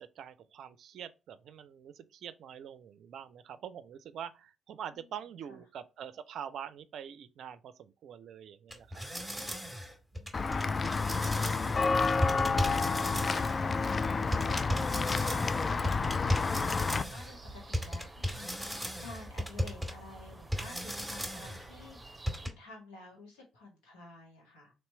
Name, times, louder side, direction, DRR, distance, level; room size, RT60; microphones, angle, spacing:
voice 1, 0.0-9.1, right 9 dB, 60° right, 0.4 m, -45 dB
sound 1, 8.7-11.9 12.2-13.6 14.3-17.4 17.7-19.9 20.5-21.7 22.3-22.5, equal, ahead, 1.6 m, -36 dB
Walk footsteps / Bell, 10.3-17.0, left 4 dB, 35° left, 0.3 m, -30 dB
voice 2, 12.8-24.7, left 3 dB, 75° left, 1.5 m, -51 dB
sound 2, 15.2-22.5, right 1 dB, 20° right, 0.9 m, -50 dB
3.1 x 3.0 x 4.3 m
hypercardioid pair, 45°, 0 cm